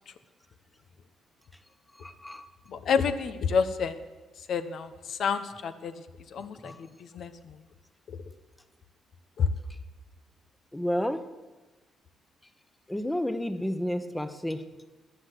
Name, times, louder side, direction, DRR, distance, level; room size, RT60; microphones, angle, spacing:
voice 1, 2.0-2.5 6.6-6.8 10.7-11.2 12.9-14.6, left 1 dB, 10° left, 11 dB, 1.1 m, -31 dB
voice 2, 2.7-4.0 4.5-5.9 6.3-6.7 7.1-7.5 9.4-9.5, left 6 dB, 65° left, 10 dB, 0.9 m, -28 dB
14.5 x 9.9 x 7.9 m, 1.2 s
cardioid pair, 90°, 0 cm